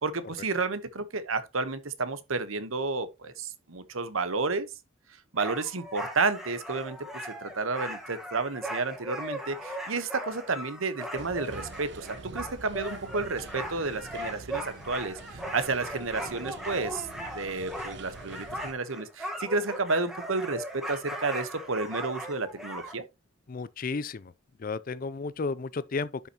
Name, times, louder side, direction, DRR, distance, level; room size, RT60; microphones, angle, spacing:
voice 1, 0.0-4.7 5.3-7.0 7.3-17.1 17.3-23.0, right 3 dB, 85° right, 1.1 m, -31 dB
sound 1, 5.4-22.9, equal, ahead, 1.4 m, -39 dB
sound 2, 11.2-18.7, right 3 dB, 60° right, 1.0 m, -45 dB
voice 2, 23.5-24.2 24.6-26.3, left 4 dB, 45° left, 0.4 m, -33 dB
10.5 x 5.7 x 3.0 m
head